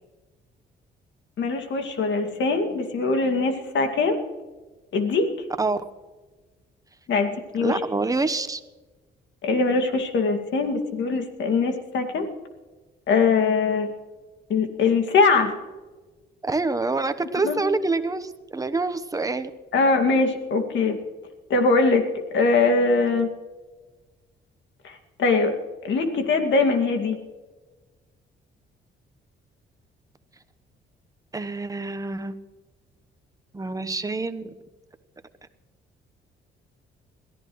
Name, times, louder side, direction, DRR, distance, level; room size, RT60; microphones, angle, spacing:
voice 1, 1.4-4.2 4.9-5.3 7.1-7.8 9.4-12.3 13.1-13.9 14.5-15.5 17.4-17.6 19.7-21.0 21.5-22.0 22.3-23.3 24.8-25.5 25.8-27.2, left 4 dB, 65° left, 5 dB, 2.3 m, -22 dB
voice 2, 7.6-8.6 16.4-19.5 23.1-23.2 31.3-32.3 33.5-34.5, right 3 dB, 15° right, 10 dB, 1.0 m, -26 dB
22.0 x 14.5 x 3.2 m, 1.2 s
cardioid pair, 90°, 20 cm